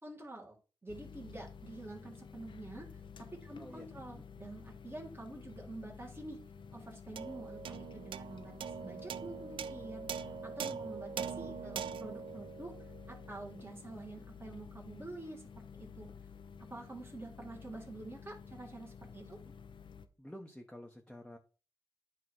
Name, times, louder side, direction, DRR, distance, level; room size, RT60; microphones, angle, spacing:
voice 1, 0.0-0.6 0.8-2.9 3.4-6.4 6.7-15.4 15.7-16.1 16.7-19.4, right 2 dB, 25° right, -2 dB, 2.1 m, -48 dB
sound 1, 0.9-20.1, left 6 dB, 70° left, 0.8 m, -52 dB
voice 2, 3.6-4.2 11.6-11.7 19.4-19.5 20.2-21.4, left 1 dB, 10° left, 1 dB, 1.1 m, -51 dB
sound 2, 7.2-13.8, right 7 dB, 80° right, 0.4 m, -43 dB
8.9 x 3.1 x 6.3 m, 0.35 s
cardioid pair, 55°, 9 cm